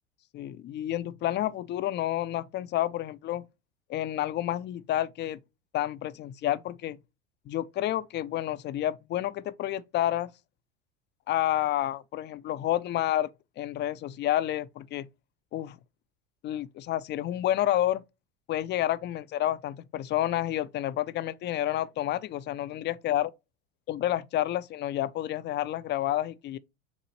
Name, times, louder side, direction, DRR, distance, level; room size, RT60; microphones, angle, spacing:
voice 1, 0.3-3.4 3.9-5.4 5.7-7.0 7.5-10.3 11.3-13.3 13.6-15.1 15.5-15.8 16.4-18.0 18.5-23.3 23.9-26.6, left 13 dB, 30° left, 0.4 m, -29 dB
7.0 x 2.4 x 3.0 m
hypercardioid pair, 70°, 36 cm